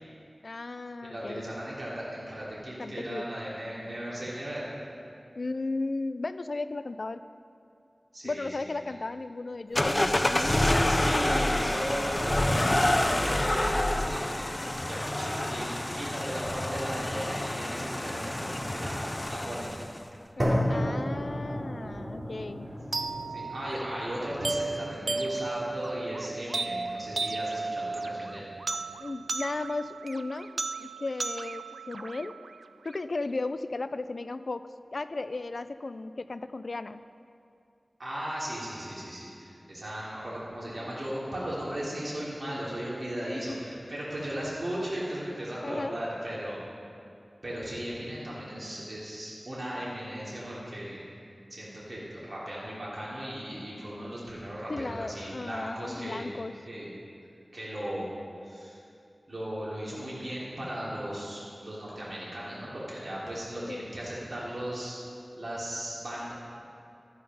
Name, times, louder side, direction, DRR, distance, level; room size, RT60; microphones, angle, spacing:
voice 1, 0.4-1.5 2.8-3.3 5.4-7.2 8.2-10.3 20.4-22.7 29.0-32.4 32.8-37.0 43.5-43.6 45.6-46.0 54.7-56.6 63.7-63.9, left 3 dB, 70° left, 12 dB, 0.4 m, -35 dB
voice 2, 1.0-4.7 8.1-8.5 10.8-14.5 14.8-19.0 19.3-19.9 22.7-22.8 23.3-28.4 38.0-46.6 47.4-51.1 51.5-56.3 56.6-56.9 57.5-58.1 58.4-58.8 59.3-65.0 65.4-66.3, equal, 60° right, -8 dB, 2.9 m, -36 dB
sound 1, 9.8-20.0, left 1 dB, 30° left, 0.6 m, -28 dB
sound 2, 20.4-28.4, equal, 45° right, 2.9 m, -34 dB
sound 3, 22.9-32.9, right 3 dB, 80° right, 0.3 m, -35 dB
12.0 x 9.4 x 5.4 m, 2.5 s
wide cardioid pair, 55°, 0 cm